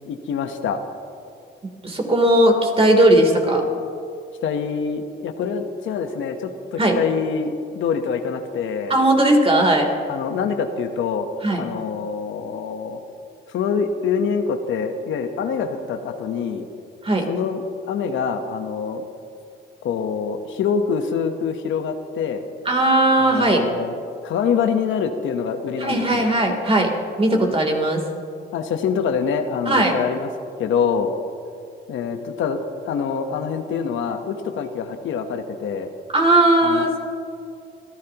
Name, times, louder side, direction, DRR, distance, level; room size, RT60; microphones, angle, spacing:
voice 1, 0.1-0.8 4.4-8.9 10.1-11.3 11.6-13.0 13.5-16.6 17.3-19.1 19.8-22.4 23.2-23.9 24.2-26.3 28.5-30.3 30.6-31.1 31.9-35.9 36.6-36.8, left 6 dB, 75° left, 7 dB, 1.1 m, -25 dB
voice 2, 1.8-3.7 6.8-7.0 8.9-9.9 11.4-11.6 17.0-17.2 22.6-23.6 25.8-26.9 27.2-28.0 29.6-29.9 36.1-37.0, right 1 dB, 30° right, 1 dB, 3.3 m, -17 dB
25.5 x 15.0 x 3.0 m, 2.4 s
cardioid pair, 90°, 20 cm